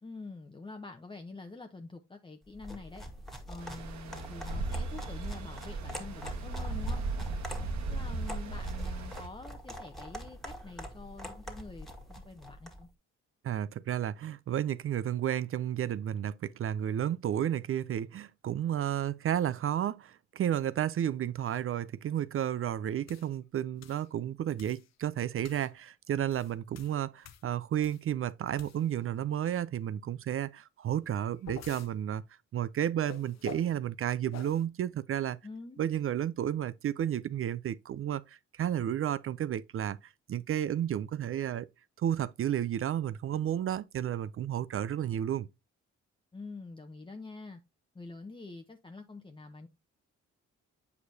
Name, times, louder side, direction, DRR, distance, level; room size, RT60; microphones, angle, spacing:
voice 1, 0.0-3.1 3.5-7.0 7.9-12.9 35.4-35.8 46.3-47.6 47.9-49.7, left 3 dB, 15° left, 0.8 m, -46 dB
sound 1, 2.5-12.8, equal, ahead, 1.7 m, -45 dB
Stream, 3.6-9.3, right 3 dB, 70° right, 1.4 m, -36 dB
voice 2, 13.4-32.2 32.5-35.4 35.8-41.7 42.0-45.5, right 10 dB, 50° right, 0.5 m, -32 dB
sound 2, 23.1-23.3 23.8-24.1 24.6-24.9 25.4-25.7 26.2-28.1 28.5-29.1 31.0-31.9 33.1-33.8 34.3-34.6, left 8 dB, 65° left, 0.9 m, -49 dB
8.3 x 4.9 x 2.7 m
cardioid pair, 85°, 29 cm